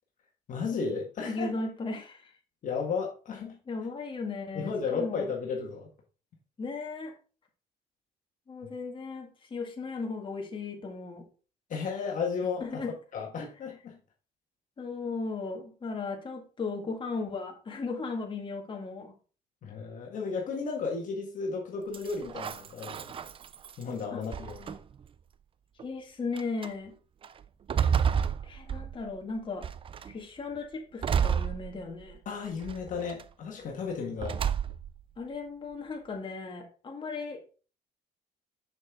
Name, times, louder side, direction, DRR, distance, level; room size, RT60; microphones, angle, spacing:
voice 1, 0.5-1.5 2.6-3.6 4.5-5.9 11.7-12.7 13.1-14.0 19.6-23.1 23.8-24.8 32.3-34.4, left 5 dB, 50° left, 0 dB, 1.7 m, -34 dB
voice 2, 1.2-2.3 3.7-5.3 6.6-7.1 8.5-11.3 12.6-12.9 14.8-19.1 24.1-24.2 25.8-26.9 28.4-29.7 30.0-32.2 35.2-37.4, left 4 dB, 30° left, 2 dB, 2.0 m, -36 dB
sound 1, 21.9-23.8 24.3-25.0 25.8-25.9 26.4-26.7 27.2-29.2 29.6-30.1 31.0-32.2 32.6-33.2 34.2-35.0, right 7 dB, 30° right, 0.4 m, -31 dB
6.6 x 6.2 x 3.7 m, 0.36 s
cardioid pair, 110°, 17 cm